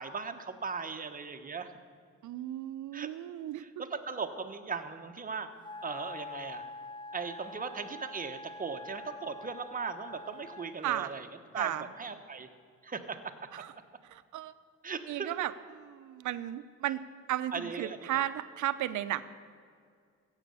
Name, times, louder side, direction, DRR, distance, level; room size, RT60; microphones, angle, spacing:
voice 1, 0.0-1.7 2.9-3.1 3.6-5.5 5.8-6.6 7.1-11.3 11.5-12.5 12.8-13.3 14.8-15.3 17.5-18.1, right 5 dB, 30° right, 6 dB, 1.1 m, -38 dB
voice 2, 2.2-3.7 10.8-11.1 11.5-11.8 13.6-13.7 14.1-14.5 15.1-17.0 17.3-19.2, right 13 dB, 80° right, 13 dB, 0.7 m, -34 dB
Wind instrument woodwind instrument, 5.6-10.8, left 2 dB, 15° left, 0.4 m, -45 dB
15.5 x 8.3 x 6.9 m, 2.1 s
cardioid pair, 90°, 30 cm